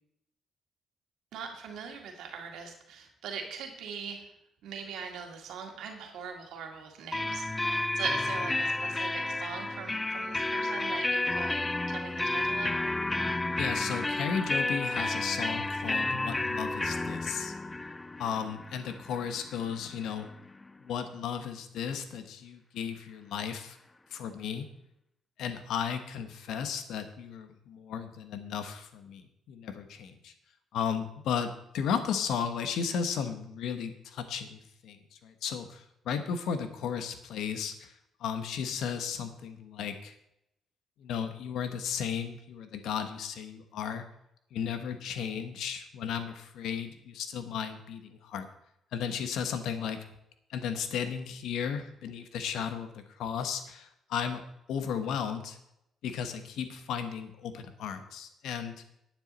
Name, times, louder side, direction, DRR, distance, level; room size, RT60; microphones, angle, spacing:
voice 1, 1.3-4.3 4.6-12.7, right 6 dB, 80° right, 3 dB, 2.0 m, -41 dB
sound 1, 7.1-20.7, left 2 dB, 15° left, 0.4 m, -31 dB
voice 2, 13.5-17.5 18.2-20.3 20.8-23.8 24.1-24.7 25.4-30.3 30.7-37.9 38.2-40.1 41.0-44.0 44.5-48.5 48.9-50.0 50.5-54.4 54.7-55.6 56.0-58.7, left 7 dB, 80° left, 9 dB, 1.1 m, -35 dB
10.5 x 9.1 x 4.1 m, 0.80 s
cardioid pair, 90°, 0 cm